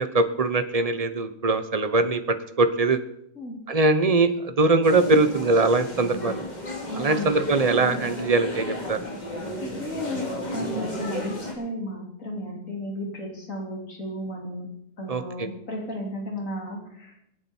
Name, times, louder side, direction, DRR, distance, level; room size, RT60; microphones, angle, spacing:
voice 1, 0.0-3.0 3.7-6.4 7.0-9.0 15.1-15.5, right 3 dB, 30° right, 10 dB, 1.0 m, -22 dB
sound 1, 4.8-11.5, left 1 dB, 30° left, 2.7 m, -33 dB
voice 2, 6.9-7.3 9.6-10.3 10.5-14.7 15.0-17.1, left 1 dB, 70° left, -1 dB, 3.6 m, -34 dB
24.5 x 8.8 x 4.5 m, 0.77 s
omnidirectional pair, 1.4 m